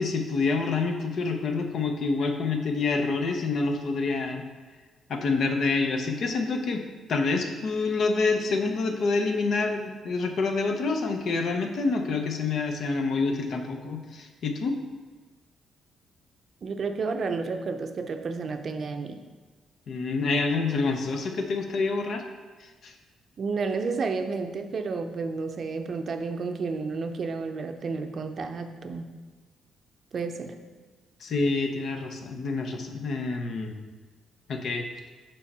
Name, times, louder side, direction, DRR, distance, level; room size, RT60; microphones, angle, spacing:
voice 1, 0.0-4.5 5.1-6.8 7.1-14.7 19.9-22.2 22.8-22.9 31.2-33.7 34.5-34.8, left 3 dB, 65° left, 4 dB, 0.8 m, -27 dB
voice 2, 16.6-19.2 23.4-29.1 30.1-30.6, right 4 dB, 50° right, 7 dB, 0.6 m, -31 dB
5.5 x 4.2 x 5.4 m, 1.3 s
cardioid pair, 90°, 0 cm